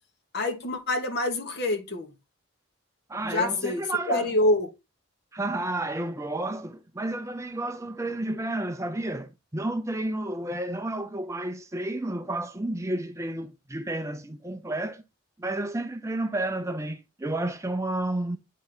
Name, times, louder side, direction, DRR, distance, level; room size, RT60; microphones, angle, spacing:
voice 1, 0.3-2.1 3.2-4.7, left 1 dB, 50° left, 1.1 m, -26 dB
voice 2, 3.1-4.3 5.3-15.0 15.4-18.4, right 1 dB, 15° right, 0.4 m, -31 dB
8.2 x 3.8 x 3.2 m
head